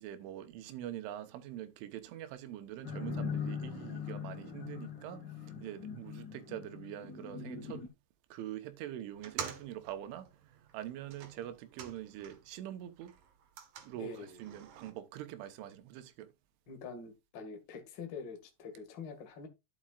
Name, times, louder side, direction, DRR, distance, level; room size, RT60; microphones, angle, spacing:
voice 1, 0.0-7.9 8.3-13.1 13.8-16.3, right 12 dB, 85° right, 3.5 m, -44 dB
sound 1, 2.8-7.9, left 6 dB, 30° left, 2.5 m, -41 dB
sound 2, 9.1-12.6 12.9-14.9, right 8 dB, 65° right, 2.1 m, -47 dB
voice 2, 14.0-14.5 16.7-19.5, left 4 dB, 75° left, 1.0 m, -45 dB
11.5 x 8.6 x 2.4 m
omnidirectional pair, 5.4 m